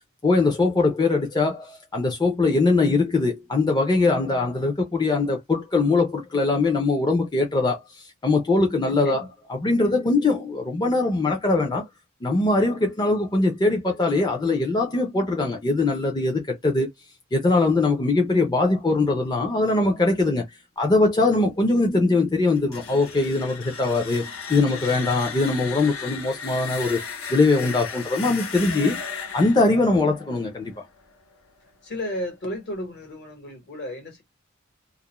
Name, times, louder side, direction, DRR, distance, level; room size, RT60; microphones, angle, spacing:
voice 1, 0.2-9.2 9.5-11.9 12.2-16.9 17.3-20.5 20.8-27.0 27.3-29.0 29.3-30.8, left 3 dB, 20° left, 0.5 m, -22 dB
voice 2, 8.8-9.3 31.8-34.2, left 1 dB, 55° left, 1.1 m, -33 dB
sound 1, 22.6-31.4, left 5 dB, 70° left, 0.7 m, -36 dB
2.4 x 2.1 x 2.9 m
head